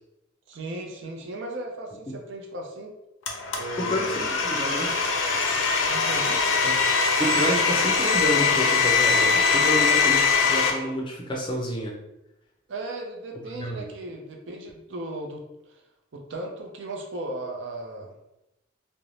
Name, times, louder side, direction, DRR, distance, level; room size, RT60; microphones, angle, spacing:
voice 1, 0.5-2.9 3.5-4.2 5.9-6.5 12.7-15.4 15.7-15.8 16.1-18.1, right 2 dB, 70° right, 1 dB, 0.5 m, -36 dB
Domestic sounds home sounds, 3.3-10.7, left 5 dB, 85° left, 0.5 m, -22 dB
voice 2, 3.8-5.0 6.6-6.8 7.2-11.9 13.5-13.9, equal, 25° left, -1 dB, 0.4 m, -29 dB
2.5 x 2.0 x 3.1 m, 0.92 s
head